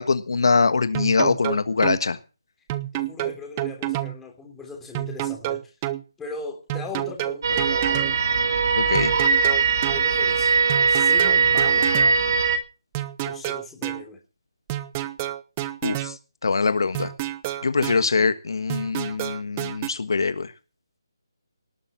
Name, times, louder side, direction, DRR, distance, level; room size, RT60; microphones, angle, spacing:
voice 1, 0.0-2.2 8.8-9.1 15.8-16.1 16.4-17.1 17.6-20.5, left 4 dB, 65° left, 12 dB, 1.5 m, -23 dB
sound 1, 0.9-2.0 2.7-4.2 4.9-6.0 6.7-8.2 8.9-10.0 10.7-12.2 12.9-14.0 14.7-16.2 16.9-18.0 18.7-19.9, right 15 dB, 20° right, 0.9 m, -29 dB
voice 2, 2.9-5.7 6.2-8.2 9.9-10.5 10.9-11.9 13.2-14.2, left 4 dB, 5° left, 1 dB, 3.3 m, -38 dB
sound 2, 7.4-12.6, right 5 dB, 45° right, 2.4 m, -20 dB
18.5 x 7.3 x 7.4 m, 0.33 s
figure-of-eight pair, 160°, 2 cm